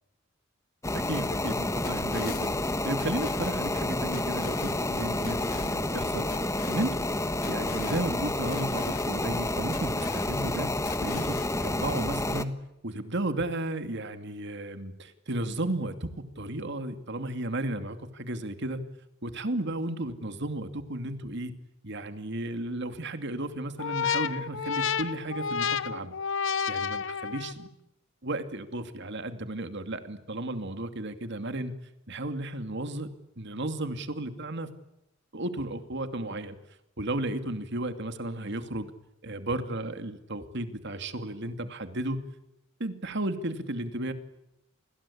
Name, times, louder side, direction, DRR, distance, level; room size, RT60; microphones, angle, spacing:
sound 1, 0.8-12.4, left 2 dB, 15° left, 1.4 m, -30 dB
voice 1, 0.9-2.5 2.8-6.3 6.7-7.0 7.4-10.7 11.0-12.5 12.8-18.8 19.2-21.5 21.8-26.1 26.7-27.7 28.2-31.7 32.1-33.1 33.4-34.7 35.3-36.6 37.0-38.9 39.2-42.2 42.8-44.1, right 1 dB, 60° right, 9 dB, 2.6 m, -34 dB
sound 2, 1.1-11.5, left 5 dB, 50° left, 2.1 m, -46 dB
sound 3, 23.8-27.7, left 7 dB, 65° left, 1.1 m, -30 dB
29.5 x 21.5 x 8.7 m, 0.89 s
head